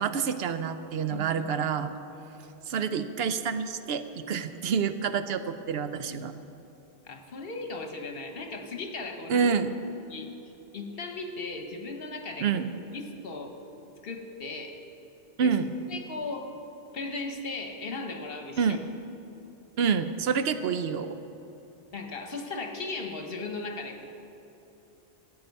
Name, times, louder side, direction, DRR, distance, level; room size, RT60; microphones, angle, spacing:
voice 1, 0.0-1.9 2.7-6.3 9.3-9.7 12.4-12.7 15.4-15.7 18.6-18.8 19.8-21.2, right 6 dB, 80° right, 10 dB, 0.9 m, -28 dB
voice 2, 1.1-2.3 6.0-6.2 7.1-9.5 10.1-10.3 10.7-12.5 12.9-13.5 14.0-14.8 15.4-15.5 15.9-16.5 16.9-18.8 21.9-24.1, left 3 dB, 70° left, 4 dB, 1.3 m, -37 dB
15.5 x 8.6 x 5.4 m, 3.0 s
omnidirectional pair, 1.0 m